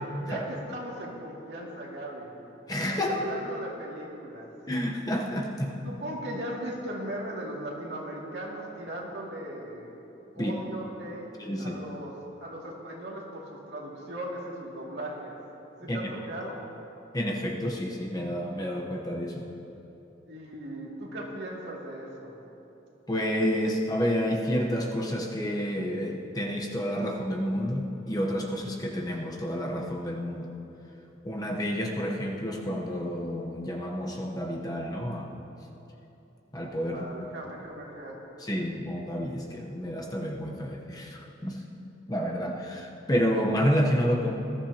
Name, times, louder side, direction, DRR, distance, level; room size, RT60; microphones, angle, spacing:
voice 1, 0.2-2.3 3.0-4.5 5.8-9.9 10.3-11.3 11.6-15.3 15.8-16.6 20.3-22.3 36.9-38.2, right 1 dB, 60° right, -3 dB, 2.4 m, -38 dB
voice 2, 2.7-3.2 4.7-5.7 10.4-10.5 11.4-11.8 15.9-16.0 17.1-19.4 23.1-30.5 31.2-35.4 36.5-37.1 38.4-41.6 42.1-44.3, equal, 20° left, 0 dB, 0.9 m, -29 dB
20.5 x 13.5 x 2.9 m, 3.0 s
head